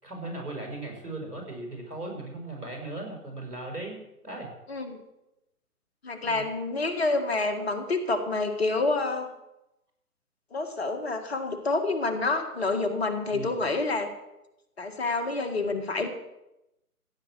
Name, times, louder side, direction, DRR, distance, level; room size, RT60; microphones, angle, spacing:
voice 1, 0.0-4.0 4.2-4.5 6.2-6.4 13.3-13.6, right 2 dB, 80° right, 1 dB, 6.5 m, -37 dB
voice 2, 6.0-9.3 10.5-14.1 14.8-16.1, left 3 dB, 40° left, 7 dB, 2.0 m, -28 dB
16.0 x 8.1 x 7.9 m, 0.88 s
figure-of-eight pair, 145°, 46 cm